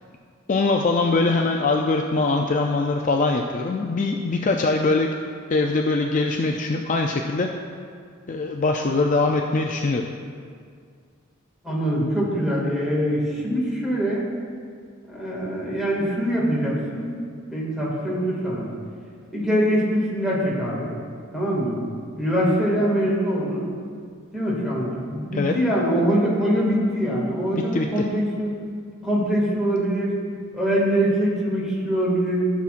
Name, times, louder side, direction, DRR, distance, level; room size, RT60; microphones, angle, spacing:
voice 1, 0.5-5.1 5.5-7.5 8.3-10.1 25.3-25.5 27.7-28.0, left 3 dB, 35° left, 2 dB, 0.4 m, -22 dB
voice 2, 11.6-14.2 15.1-17.2 17.5-18.7 19.3-20.9 21.3-21.8 22.2-23.7 24.3-28.6 29.0-30.2 30.5-32.5, equal, ahead, -6 dB, 2.1 m, -23 dB
15.0 x 7.1 x 2.5 m, 2.2 s
head